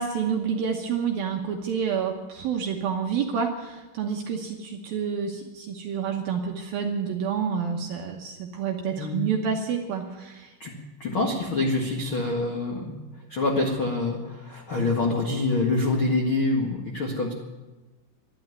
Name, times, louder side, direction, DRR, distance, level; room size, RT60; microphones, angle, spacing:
voice 1, 0.0-10.5, right 6 dB, 70° right, 2 dB, 2.3 m, -28 dB
voice 2, 11.0-12.9 13.3-17.3, left 2 dB, 90° left, -1 dB, 1.1 m, -26 dB
12.5 x 11.5 x 9.5 m, 1.2 s
omnidirectional pair, 5.5 m